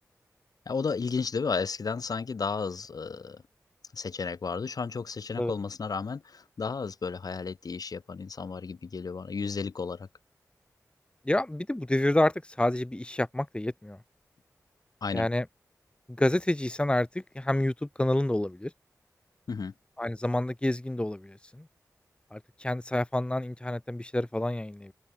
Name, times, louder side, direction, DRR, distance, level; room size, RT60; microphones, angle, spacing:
voice 1, 0.7-3.4 3.9-10.1 15.0-15.3 19.5-19.7, left 5 dB, 80° left, 3.8 m, -33 dB
voice 2, 11.3-14.0 15.1-15.4 16.2-17.1 17.3-18.7 20.0-21.3 22.3-24.9, left 1 dB, 15° left, 1.3 m, -28 dB
open air
cardioid pair, 50°, 6 cm